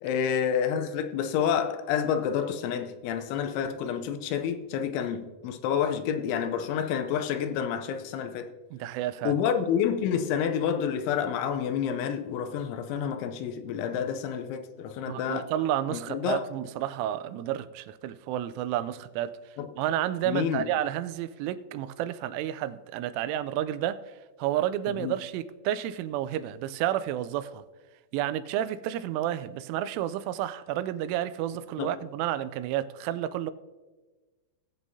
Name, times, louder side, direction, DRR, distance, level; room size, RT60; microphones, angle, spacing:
voice 1, 0.0-8.5 9.2-15.4 15.9-16.4 19.6-19.7 20.3-20.7 24.9-25.1 31.8-31.9, left 8 dB, 80° left, 3.0 m, -29 dB
voice 2, 8.7-9.4 15.1-19.4 19.8-27.6 28.1-33.5, right 12 dB, 85° right, 3.0 m, -31 dB
19.5 x 8.0 x 2.7 m
omnidirectional pair, 5.5 m